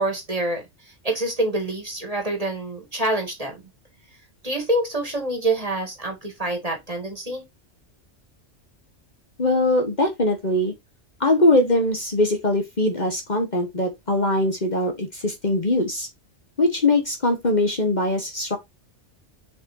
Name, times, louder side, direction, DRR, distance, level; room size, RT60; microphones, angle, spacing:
voice 1, 0.0-3.6 4.4-7.4, right 2 dB, 30° right, 2.4 m, -26 dB
voice 2, 9.4-10.7 11.2-16.1 16.6-18.6, left 2 dB, 40° left, 1.4 m, -21 dB
7.1 x 5.1 x 2.7 m
omnidirectional pair, 1.2 m